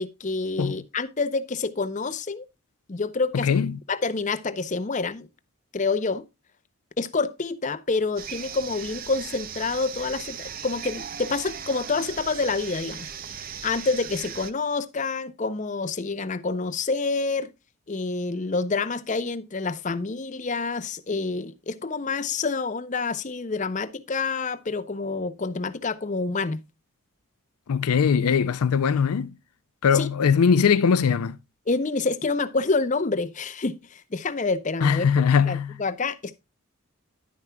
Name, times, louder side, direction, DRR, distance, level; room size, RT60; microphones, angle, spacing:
voice 1, 0.0-2.4 2.9-3.5 3.9-5.3 5.7-6.3 7.0-13.1 13.6-17.5 17.9-26.6 29.9-30.1 31.7-35.1 35.5-36.4, left 4 dB, 35° left, 0.6 m, -27 dB
voice 2, 3.3-3.8 27.7-29.3 29.8-31.4 34.8-35.8, left 6 dB, 85° left, 0.4 m, -21 dB
sound 1, 8.2-14.5, right 8 dB, 40° right, 0.6 m, -38 dB
10.5 x 9.4 x 2.2 m
head